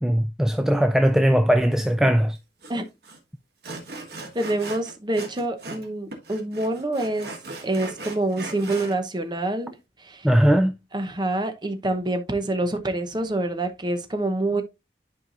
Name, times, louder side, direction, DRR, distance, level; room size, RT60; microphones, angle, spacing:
voice 1, 0.0-2.4 10.2-10.7, equal, 5° right, 0.3 m, -19 dB
Sawing, 2.6-2.7 3.0-3.2 3.6-5.9 6.1-9.0, right 2 dB, 65° right, 1.5 m, -38 dB
voice 2, 4.3-7.3 7.6-9.7 10.0-10.3 10.9-14.6, right 2 dB, 25° right, 0.9 m, -26 dB
11.0 x 4.7 x 2.5 m
head